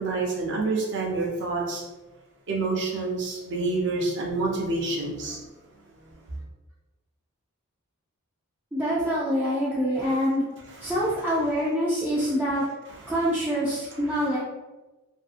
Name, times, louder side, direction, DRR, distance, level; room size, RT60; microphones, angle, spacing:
voice 1, 0.0-1.8 2.5-5.4 10.7-11.2 12.9-13.1, right 3 dB, 55° right, -2 dB, 0.6 m, -28 dB
voice 2, 8.7-10.4 10.8-12.6 13.1-14.4, equal, 10° right, -8 dB, 0.3 m, -25 dB
2.6 x 2.6 x 2.4 m, 1.1 s
head